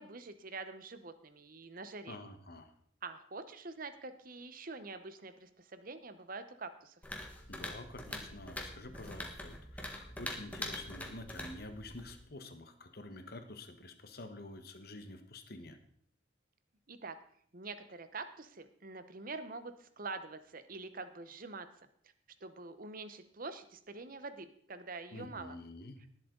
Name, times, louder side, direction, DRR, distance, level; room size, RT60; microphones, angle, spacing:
voice 1, 0.0-2.2 3.0-6.9 16.9-17.2 17.5-21.7 22.4-25.6, right 3 dB, 50° right, 10 dB, 1.0 m, -45 dB
voice 2, 2.1-2.7 7.5-15.8 25.1-26.0, left 2 dB, 55° left, 8 dB, 1.3 m, -48 dB
sound 1, 7.0-12.2, left 1 dB, 10° left, 1.6 m, -44 dB
19.0 x 7.6 x 3.9 m, 0.64 s
head